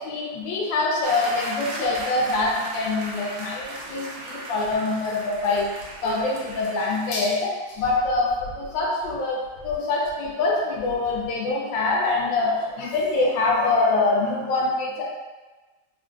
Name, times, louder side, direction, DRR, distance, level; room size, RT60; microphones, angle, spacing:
voice 1, 0.0-15.0, left 3 dB, 75° left, -3 dB, 1.3 m, -24 dB
sound 1, 1.0-7.1, right 1 dB, 75° right, 0.9 m, -37 dB
3.7 x 2.4 x 2.4 m, 1.2 s
omnidirectional pair, 2.2 m